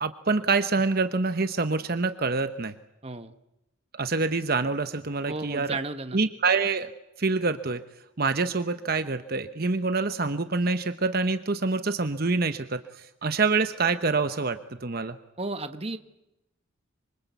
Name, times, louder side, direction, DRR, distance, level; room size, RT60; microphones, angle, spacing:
voice 1, 0.0-2.7 3.9-5.8 6.1-6.9 7.2-7.8 8.2-15.2, right 4 dB, 50° right, 10 dB, 1.0 m, -26 dB
voice 2, 3.0-3.3 5.3-6.2 15.4-16.0, right 2 dB, 30° right, 9 dB, 1.3 m, -33 dB
26.0 x 25.0 x 8.2 m, 0.90 s
head